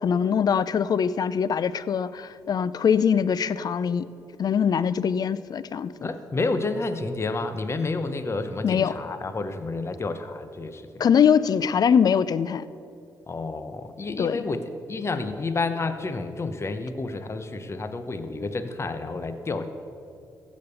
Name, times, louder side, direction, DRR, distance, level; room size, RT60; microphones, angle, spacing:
voice 1, 0.0-4.1 4.4-5.9 8.6-8.9 11.0-12.7 14.2-14.4, left 7 dB, 55° left, 16 dB, 0.4 m, -22 dB
voice 2, 6.0-10.8 13.3-19.7, left 3 dB, 35° left, 10 dB, 0.8 m, -30 dB
15.0 x 5.2 x 6.8 m, 2.5 s
cardioid pair, 65°, 8 cm